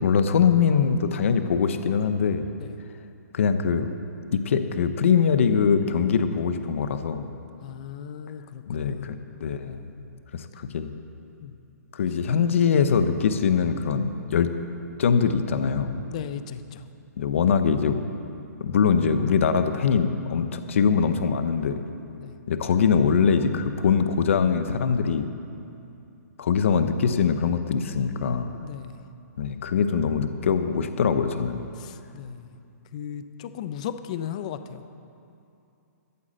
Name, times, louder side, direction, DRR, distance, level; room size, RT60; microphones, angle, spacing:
voice 1, 0.0-2.5 3.3-3.9 4.3-7.3 8.7-9.9 10.3-10.9 11.9-14.5 15.0-16.0 17.2-18.0 18.6-21.8 22.5-25.3 26.4-28.6 29.4-31.7, left 6 dB, 50° left, 9 dB, 0.7 m, -23 dB
voice 2, 7.6-9.1 10.6-10.7 11.4-11.5 16.1-16.8 22.2-22.3 28.5-29.0 31.8-32.5 32.9-34.8, left 9 dB, 25° left, 11 dB, 0.4 m, -36 dB
14.0 x 8.2 x 7.6 m, 2.7 s
hypercardioid pair, 170°, 9 cm